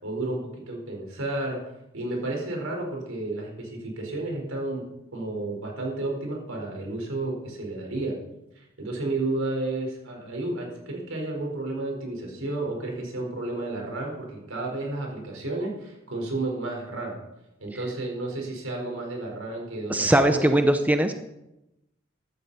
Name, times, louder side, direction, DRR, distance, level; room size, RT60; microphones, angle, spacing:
voice 1, 0.0-0.4 0.7-1.6 1.9-4.8 5.1-8.1 8.6-17.2 17.6-20.6, right 2 dB, 80° right, 0 dB, 4.5 m, -32 dB
voice 2, 19.9-21.1, right 1 dB, 10° right, 7 dB, 0.6 m, -20 dB
15.5 x 12.0 x 4.2 m, 0.90 s
head